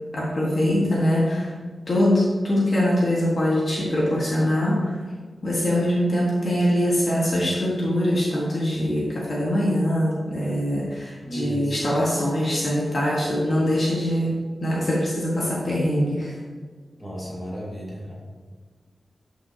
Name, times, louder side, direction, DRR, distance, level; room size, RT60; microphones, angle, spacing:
voice 1, 0.1-1.5 1.9-5.0 5.4-16.4, equal, 45° left, -5 dB, 1.6 m, -23 dB
voice 2, 11.2-11.8 17.0-18.1, equal, 10° left, -5 dB, 2.1 m, -33 dB
11.5 x 6.2 x 2.9 m, 1.5 s
wide cardioid pair, 175°, 0 cm